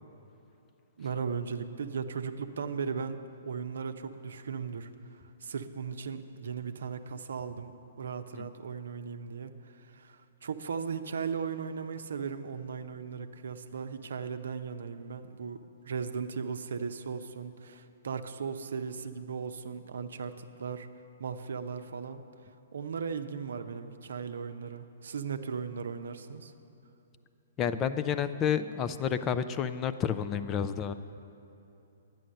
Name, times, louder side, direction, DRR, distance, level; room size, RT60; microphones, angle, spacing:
voice 1, 1.0-15.6 15.8-20.9 21.2-22.2 22.7-26.5, right 6 dB, 70° right, 8 dB, 0.6 m, -37 dB
voice 2, 27.6-30.9, left 8 dB, 25° left, 12 dB, 0.4 m, -30 dB
11.0 x 9.1 x 6.5 m, 2.8 s
figure-of-eight pair, 125°, 0 cm